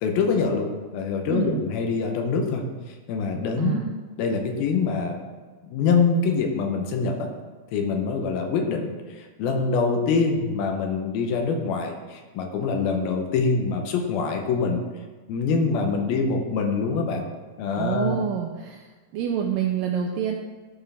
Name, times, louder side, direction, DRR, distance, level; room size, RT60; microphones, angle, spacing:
voice 1, 0.0-2.6 3.1-3.9 4.2-5.2 5.7-7.3 7.7-14.8 15.3-17.3 17.6-18.2, left 4 dB, 80° left, 3 dB, 2.6 m, -24 dB
voice 2, 1.3-1.6 3.6-3.9 17.8-18.9 19.1-20.4, right 8 dB, 85° right, 2 dB, 1.9 m, -27 dB
13.0 x 4.5 x 3.3 m, 1.4 s
omnidirectional pair, 4.4 m